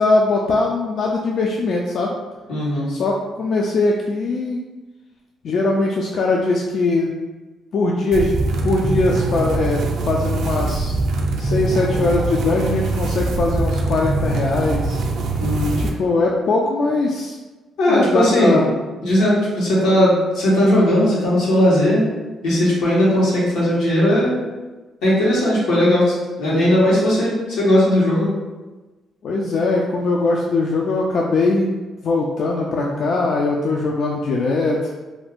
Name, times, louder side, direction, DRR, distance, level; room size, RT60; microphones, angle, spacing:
voice 1, 0.0-2.1 2.9-4.6 5.4-7.2 7.7-8.4 8.6-11.0 11.4-15.0 15.8-17.4 17.9-18.7 29.2-34.9, left 3 dB, 60° left, -1 dB, 0.3 m, -21 dB
voice 2, 2.5-2.9 15.4-15.7 17.8-18.6 19.0-22.1 22.4-24.3 25.0-28.3 32.8-33.1, left 1 dB, 90° left, -7 dB, 1.2 m, -17 dB
sound 1, 8.1-15.9, right 2 dB, 75° right, 0.4 m, -22 dB
2.5 x 2.4 x 3.4 m, 1.2 s
cardioid pair, 90°, 0 cm